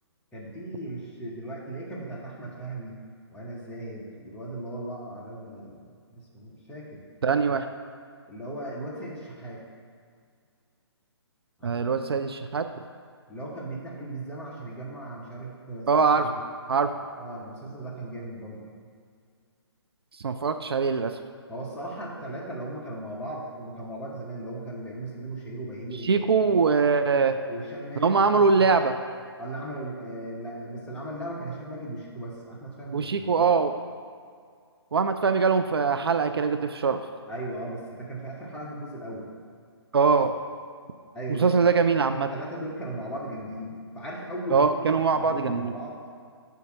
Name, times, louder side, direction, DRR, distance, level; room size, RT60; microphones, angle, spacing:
voice 1, 0.3-3.0 3.3-7.0 8.3-9.7 11.6-11.9 13.3-16.4 17.2-18.6 21.5-26.6 27.5-28.7 29.4-33.5 37.3-39.3 41.1-41.7 42.3-45.9, right 1 dB, 5° left, -5 dB, 1.0 m, -37 dB
voice 2, 7.2-7.7 11.6-12.7 15.9-16.3 16.7-16.9 20.2-21.1 26.0-27.4 28.0-29.0 32.9-33.7 34.9-37.0 39.9-40.3 41.3-42.3 44.5-45.7, right 5 dB, 65° right, 7 dB, 0.4 m, -22 dB
8.0 x 2.8 x 6.1 m, 2.2 s
figure-of-eight pair, 135°, 14 cm